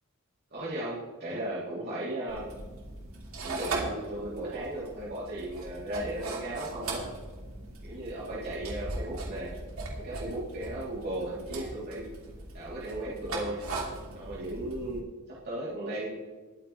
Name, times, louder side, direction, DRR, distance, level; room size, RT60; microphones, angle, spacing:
voice 1, 0.5-2.5 3.4-7.1 7.8-9.5 9.9-12.1 12.5-13.6 14.1-15.0 15.3-16.2, right 1 dB, 50° right, -7 dB, 3.1 m, -36 dB
sound 1, 2.3-15.0, right 2 dB, 80° right, 2.8 m, -39 dB
22.0 x 8.9 x 3.2 m, 1.3 s
head